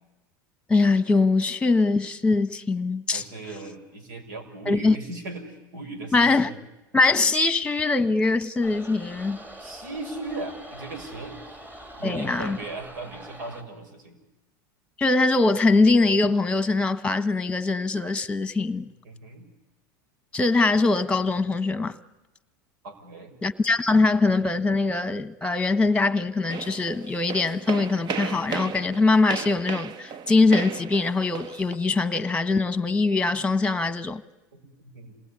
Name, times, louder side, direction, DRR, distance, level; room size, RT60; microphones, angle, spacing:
voice 1, 0.7-3.2 4.7-5.0 6.1-6.5 6.9-9.4 12.0-12.6 15.0-18.9 20.3-22.0 23.4-34.2, left 3 dB, 10° left, 1.4 m, -22 dB
voice 2, 3.1-6.6 9.6-11.6 12.0-14.2 19.0-19.5 22.8-23.3 34.5-35.1, right 2 dB, 80° right, 6.0 m, -38 dB
sound 1, 8.6-13.6, right 1 dB, 15° right, 3.5 m, -43 dB
sound 2, 26.5-31.8, right 7 dB, 45° right, 1.3 m, -35 dB
27.5 x 18.5 x 9.8 m
hypercardioid pair, 100°, 10 cm